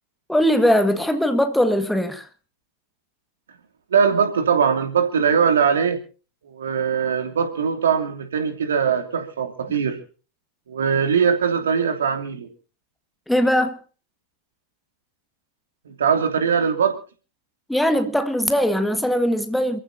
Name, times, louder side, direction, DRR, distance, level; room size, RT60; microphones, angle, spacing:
voice 1, 0.3-2.3 13.3-13.8 17.7-19.8, equal, 5° left, 1.7 m, -20 dB
voice 2, 3.9-6.0 6.4-10.0 10.7-12.5 15.8-17.0, right 6 dB, 65° right, 2.9 m, -21 dB
28.0 x 15.0 x 2.7 m
figure-of-eight pair, 90°, 0 cm